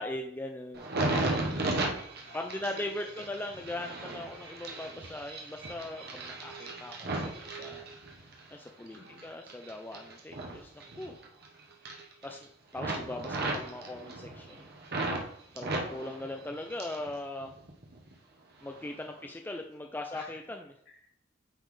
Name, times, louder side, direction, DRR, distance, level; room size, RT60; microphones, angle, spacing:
voice 1, 0.0-0.9 2.3-7.9 8.5-10.7 11.0-11.2 11.9-14.7 15.5-17.5 18.6-20.7, left 1 dB, 10° left, 3 dB, 0.4 m, -40 dB
sound 1, 0.7-8.4 8.9-11.5 11.7-12.4 12.7-15.2 15.6-17.1 17.4-18.1 18.7-18.9, right 2 dB, 55° right, 1.2 m, -36 dB
voice 2, 1.0-1.8 2.2-2.8 3.1-3.2 8.9-9.3 15.7-16.1 19.1-19.3 20.1-20.4 20.9-21.1, left 2 dB, 60° left, -3 dB, 2.3 m, -49 dB
9.0 x 4.1 x 3.2 m, 0.72 s
head